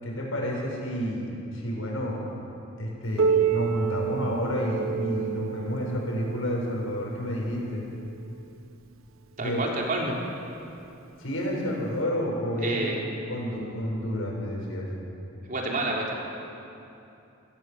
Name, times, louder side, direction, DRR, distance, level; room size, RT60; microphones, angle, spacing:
voice 1, 0.0-2.2 2.8-7.8 9.4-9.7 11.2-12.9 13.3-14.9, equal, 90° left, -2 dB, 6.8 m, -30 dB
Piano, 3.2-8.5 9.4-9.5 10.0-10.1 10.8-10.9 12.0-12.1, right 7 dB, 80° right, 1.3 m, -29 dB
voice 2, 9.4-10.1 12.6-13.0 15.5-16.1, right 2 dB, 45° right, -2 dB, 4.0 m, -29 dB
29.0 x 16.0 x 7.4 m, 2.8 s
head